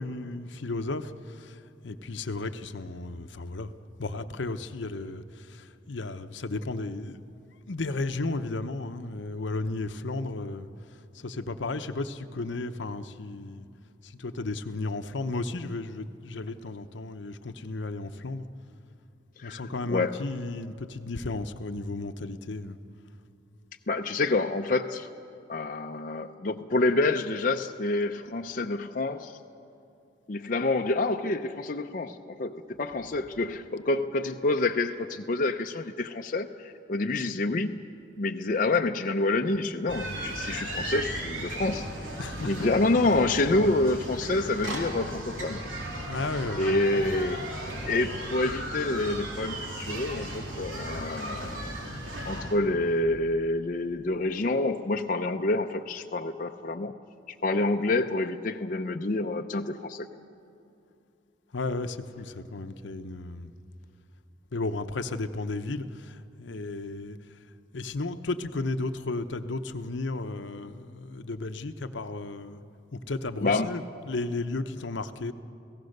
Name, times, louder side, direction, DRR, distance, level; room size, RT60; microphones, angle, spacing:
voice 1, 0.0-3.7 4.0-7.2 7.7-10.7 11.1-13.7 14.0-18.4 19.4-22.8 42.2-42.7 43.5-43.7 46.1-47.1 61.5-63.5 64.5-67.2 67.7-72.6 72.9-75.3, left 2 dB, 75° left, 0.8 m, -34 dB
voice 2, 23.9-25.1 25.5-29.4 30.3-37.8 38.2-41.9 42.4-46.1 46.6-47.4 47.8-52.0 52.3-56.9 57.3-60.1 73.4-73.7, left 2 dB, 45° left, 0.6 m, -28 dB
sound 1, 39.9-52.6, right 1 dB, 90° right, 3.7 m, -36 dB
29.5 x 17.0 x 6.6 m
head